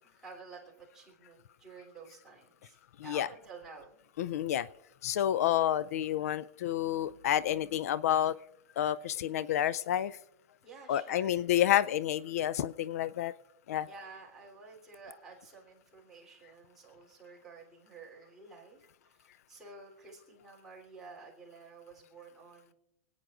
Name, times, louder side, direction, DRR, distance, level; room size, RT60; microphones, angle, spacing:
voice 1, 0.0-4.0 5.3-5.5 10.6-11.5 13.9-22.7, right 4 dB, 5° right, -6 dB, 3.2 m, -51 dB
voice 2, 4.2-4.7 5.0-8.4 8.8-10.2 10.9-13.3 13.7-13.9, left 11 dB, 75° left, 19 dB, 0.3 m, -29 dB
26.0 x 9.2 x 2.5 m, 0.84 s
supercardioid pair, 170°, 8 cm